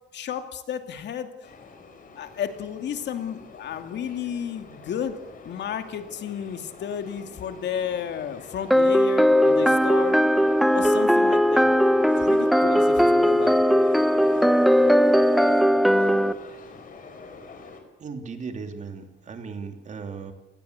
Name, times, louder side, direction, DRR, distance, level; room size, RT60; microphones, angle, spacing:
voice 1, 0.1-1.5 2.2-5.2 5.4-10.2 10.7-11.7 12.1-13.6, left 8 dB, 70° left, 7 dB, 2.5 m, -32 dB
sound 1, 1.4-17.8, left 4 dB, 50° left, 4.9 m, -45 dB
sound 2, 8.7-16.3, equal, ahead, 0.9 m, -19 dB
voice 2, 18.0-20.3, right 5 dB, 40° right, 6 dB, 3.3 m, -36 dB
28.0 x 19.5 x 8.2 m, 0.92 s
cardioid pair, 160°, 19 cm